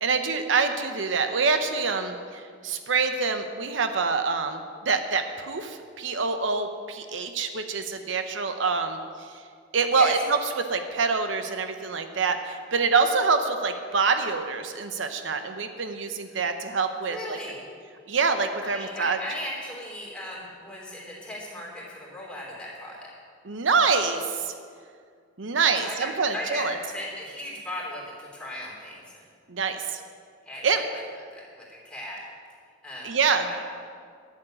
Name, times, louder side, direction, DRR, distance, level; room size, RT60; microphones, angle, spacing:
voice 1, 0.0-4.6 4.8-9.0 9.7-10.2 10.5-17.4 18.1-19.2 23.4-24.5 25.4-26.8 29.5-30.0 30.6-30.8 33.0-33.5, right 4 dB, 80° right, 7 dB, 0.8 m, -26 dB
voice 2, 17.1-17.6 18.6-23.1 25.8-29.2 30.4-31.0 31.3-32.2 32.8-33.1 33.5-33.6, left 1 dB, 5° left, -5 dB, 3.3 m, -37 dB
12.0 x 7.4 x 8.8 m, 2.1 s
head